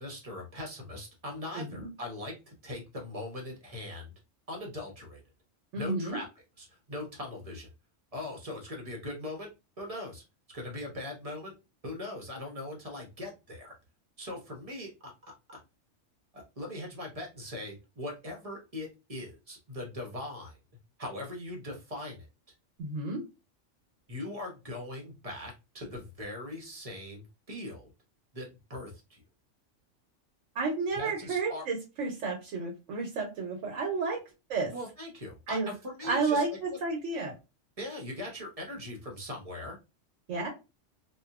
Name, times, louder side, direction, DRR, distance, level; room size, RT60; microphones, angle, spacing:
voice 1, 0.0-4.1 4.5-5.2 5.8-6.3 6.6-7.7 8.1-9.5 9.8-10.2 10.5-11.5 11.8-13.7 14.2-15.1 15.5-15.6 16.3-20.6 21.0-22.3 24.1-27.9 28.3-29.2 30.9-31.6 34.7-36.6 37.8-39.8, left 1 dB, 35° right, 1 dB, 0.7 m, -40 dB
voice 2, 1.5-1.9 5.7-6.2 22.8-23.2 30.5-34.2 34.5-34.7 35.5-35.7 36.0-37.3 40.3-40.5, right 3 dB, 85° right, 1 dB, 1.1 m, -31 dB
2.8 x 2.3 x 2.3 m, 0.27 s
omnidirectional pair, 1.3 m